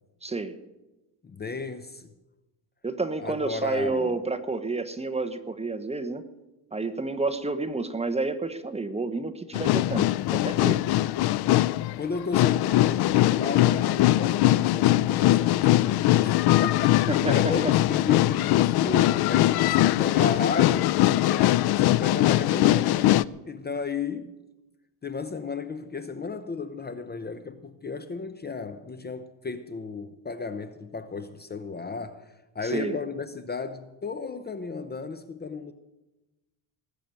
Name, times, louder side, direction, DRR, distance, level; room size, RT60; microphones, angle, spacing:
voice 1, 0.2-0.6 2.8-6.3 6.7-10.8 17.1-17.4 17.6-17.7 32.6-33.0, right 3 dB, 15° right, 0.9 m, -30 dB
voice 2, 1.2-2.1 3.2-4.2 12.0-23.1 23.5-24.4 25.0-32.3 32.5-35.7, left 4 dB, 20° left, 0.7 m, -34 dB
sound 1, 9.5-23.2, left 15 dB, 60° left, 0.5 m, -21 dB
19.0 x 6.7 x 8.9 m
cardioid pair, 125°, 44 cm